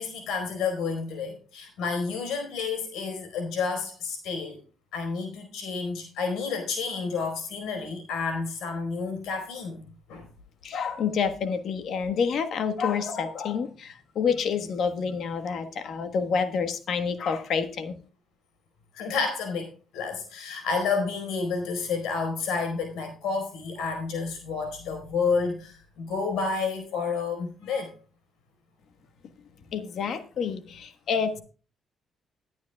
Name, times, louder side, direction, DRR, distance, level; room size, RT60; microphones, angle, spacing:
voice 1, 0.0-4.6 4.9-9.8 10.1-10.2 18.9-27.9, left 4 dB, 90° left, 4.5 m, -30 dB
voice 2, 10.6-18.0 29.7-31.4, left 6 dB, 65° left, 1.4 m, -28 dB
19.5 x 9.4 x 2.3 m
cardioid pair, 90°, 0 cm